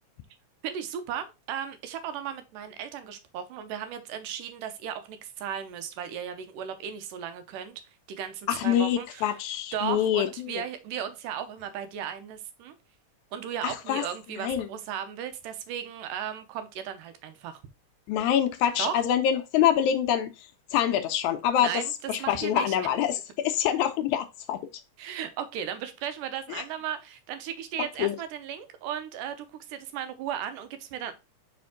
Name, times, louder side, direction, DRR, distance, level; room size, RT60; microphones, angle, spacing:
voice 1, 0.6-7.8 8.1-9.3 9.7-12.8 13.3-17.6 18.8-19.0 21.6-22.9 25.0-31.1, right 9 dB, 85° right, 2.4 m, -36 dB
voice 2, 8.5-10.6 13.6-14.0 14.4-14.7 18.1-21.8 22.1-24.6 26.5-26.6 28.0-28.2, left 10 dB, 80° left, 1.8 m, -26 dB
5.1 x 5.1 x 3.6 m
omnidirectional pair, 3.7 m